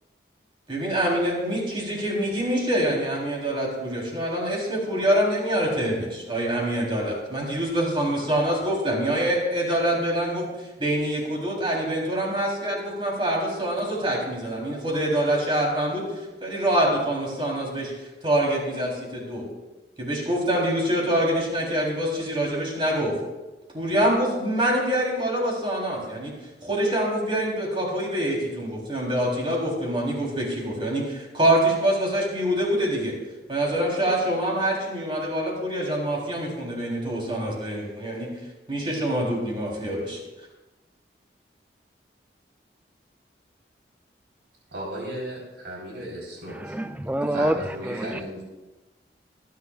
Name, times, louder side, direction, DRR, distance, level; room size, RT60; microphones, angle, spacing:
voice 1, 0.7-10.5 10.8-16.0 16.4-17.9 18.2-19.4 20.0-23.2 23.7-26.3 26.6-33.2 33.5-38.3 38.7-40.2, right 1 dB, 30° right, -3 dB, 3.8 m, -25 dB
voice 2, 44.7-46.7 47.3-48.4, right 1 dB, 85° right, -4 dB, 4.3 m, -35 dB
voice 3, 46.5-48.2, right 1 dB, 10° right, 8 dB, 0.5 m, -27 dB
25.0 x 10.5 x 2.5 m, 1.1 s
head